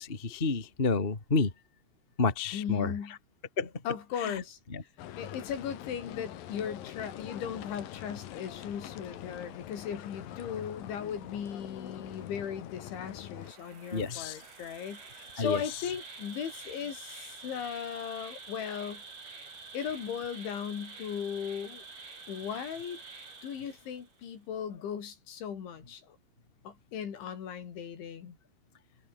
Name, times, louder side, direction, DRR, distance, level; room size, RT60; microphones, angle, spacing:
voice 1, 0.0-1.5 2.2-2.9 3.6-3.7 4.2-4.4 4.7-4.8 13.9-14.4 15.4-15.6, left 4 dB, 20° left, 1.4 m, -29 dB
voice 2, 2.5-3.2 3.9-4.6 5.2-19.0 19.7-21.8 22.3-23.0 23.4-26.2 26.7-28.4, left 8 dB, 75° left, 6.1 m, -37 dB
sound 1, 5.0-13.5, left 12 dB, 60° left, 2.7 m, -44 dB
Insect, 13.4-24.2, right 4 dB, 55° right, 9.7 m, -48 dB
omnidirectional pair, 5.4 m